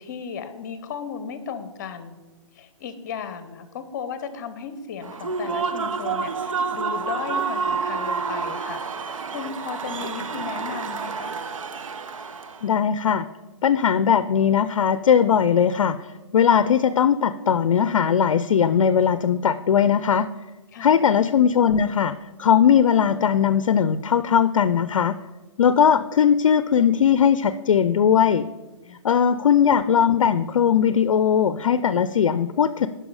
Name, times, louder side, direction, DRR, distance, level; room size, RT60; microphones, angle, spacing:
voice 1, 0.0-2.2 2.5-8.8 9.3-11.3 20.7-21.0 28.9-29.0, left 6 dB, 35° left, 11 dB, 0.8 m, -35 dB
Human voice / Cheering / Applause, 5.0-12.7, right 5 dB, 85° right, 0.7 m, -29 dB
voice 2, 12.6-13.3 13.6-16.0 16.3-20.3 20.8-22.1 22.4-25.1 25.6-28.5 29.0-32.9, left 8 dB, 75° left, 13 dB, 0.4 m, -19 dB
10.5 x 5.7 x 4.8 m, 1.2 s
hypercardioid pair, 160°, 16 cm